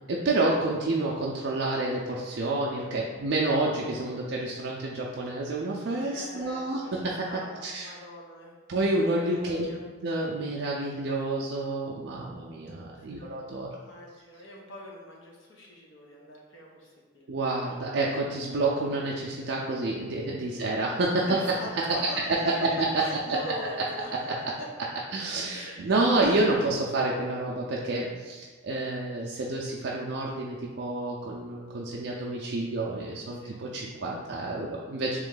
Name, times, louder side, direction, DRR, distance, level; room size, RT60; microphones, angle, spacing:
voice 1, 0.1-7.9 8.7-9.7 10.0-13.7 17.3-21.4 21.7-23.0 24.3-24.4 25.1-35.2, right 2 dB, 60° right, -3 dB, 0.4 m, -29 dB
voice 2, 2.7-3.2 6.1-8.6 9.1-9.8 12.9-13.4 13.7-17.3 21.3-22.5 23.0-24.2 24.6-24.7 25.5-25.9 33.4-33.6, left 1 dB, 70° left, -2 dB, 0.8 m, -43 dB
3.5 x 3.1 x 3.8 m, 1.5 s
head